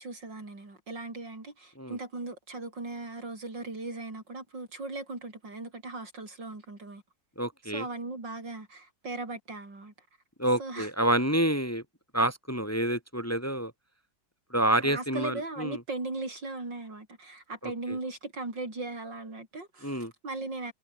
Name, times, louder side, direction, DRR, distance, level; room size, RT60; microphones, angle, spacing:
voice 1, 0.0-7.0 7.6-9.9 10.6-10.9 14.8-20.7, right 2 dB, 80° right, 6.8 m, -38 dB
voice 2, 7.4-7.8 10.4-11.8 12.1-13.7 14.5-15.8 17.6-17.7 19.8-20.1, right 1 dB, 10° left, 2.6 m, -28 dB
omnidirectional pair, 1.9 m